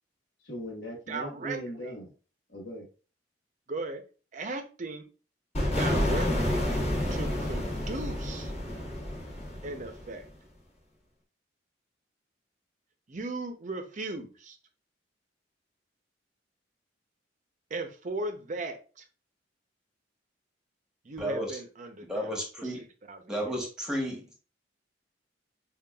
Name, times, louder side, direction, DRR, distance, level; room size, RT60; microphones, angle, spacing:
voice 1, 0.4-2.1 2.5-2.9, equal, 70° left, -4 dB, 1.5 m, -39 dB
voice 2, 1.1-1.9 3.7-4.0 4.3-5.1 5.7-6.7 7.1-8.5 9.6-10.2 13.1-14.6 17.7-19.1 21.0-22.3 22.6-23.5, right 2 dB, 40° right, 7 dB, 0.6 m, -37 dB
sound 1, 5.5-10.2, left 1 dB, 35° left, 1.0 m, -29 dB
voice 3, 21.2-21.5 22.1-22.8 23.3-24.3, equal, 5° right, 0 dB, 1.0 m, -32 dB
5.2 x 2.4 x 2.3 m, 0.35 s
head